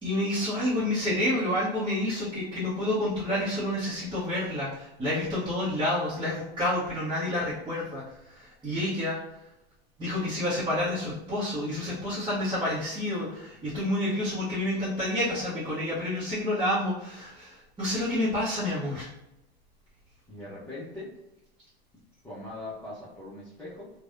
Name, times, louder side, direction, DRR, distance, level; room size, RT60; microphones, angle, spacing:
voice 1, 0.0-9.2 10.0-19.1, left 1 dB, 15° right, -11 dB, 1.1 m, -29 dB
voice 2, 20.3-21.1 22.2-23.9, left 2 dB, 10° left, -9 dB, 0.9 m, -41 dB
3.2 x 2.4 x 2.6 m, 0.90 s
hypercardioid pair, 90°, 31 cm